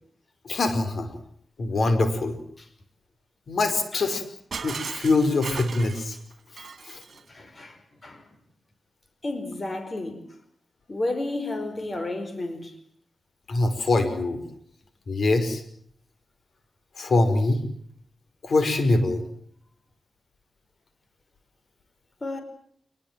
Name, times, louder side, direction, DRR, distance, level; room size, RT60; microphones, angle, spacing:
voice 1, 0.4-1.2 1.6-2.4 3.5-4.2 4.6-6.2 6.5-7.0 13.5-14.4 15.1-15.6 17.0-17.6 18.4-19.2, left 2 dB, 65° left, 5.3 m, -23 dB
Shatter, 4.5-7.3, right 5 dB, 65° right, 2.8 m, -37 dB
voice 2, 7.3-8.3 9.2-10.2 10.9-12.7 22.2-22.4, left 2 dB, 35° left, 5.1 m, -32 dB
28.5 x 20.0 x 7.6 m
cardioid pair, 85°, 0 cm